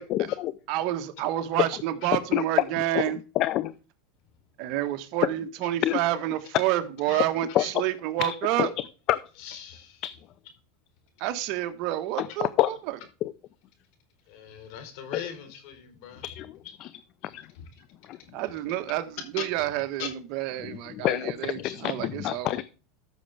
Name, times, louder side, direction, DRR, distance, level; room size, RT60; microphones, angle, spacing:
voice 1, 0.1-0.5 1.6-1.7 2.3-2.4 2.9-3.0 3.4-3.7 5.8-6.0 7.5-7.8 8.2-8.7 9.1-9.3 12.2-12.7 13.2-13.3 16.2-16.5 16.8-16.9 17.3-17.4 18.0-18.2 20.7-22.6, left 14 dB, 45° left, 0.5 m, -27 dB
voice 2, 0.7-3.2 4.6-8.7 11.2-13.0 18.3-22.6, right 13 dB, 55° right, 1.4 m, -29 dB
voice 3, 9.4-10.0 14.3-16.3 16.6-16.8 17.2-17.6 18.1-18.3 19.4-19.6 20.0-20.1 21.6-21.7, left 8 dB, 60° left, 4.1 m, -40 dB
13.5 x 6.6 x 3.5 m
supercardioid pair, 135°, 0 cm